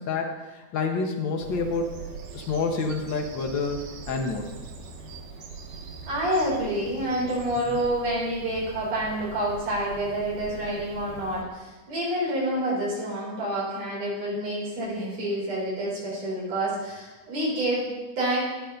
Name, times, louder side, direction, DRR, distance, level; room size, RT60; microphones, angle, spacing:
voice 1, 0.0-1.9 2.3-4.5 7.7-7.8, left 4 dB, 80° left, 1 dB, 1.0 m, -28 dB
Bird vocalization bird call bird song, 1.4-11.4, right 4 dB, 85° right, 2.7 m, -42 dB
voice 2, 6.1-18.4, right 1 dB, 55° right, -6 dB, 5.2 m, -28 dB
11.0 x 11.0 x 3.9 m, 1.2 s
omnidirectional pair, 3.6 m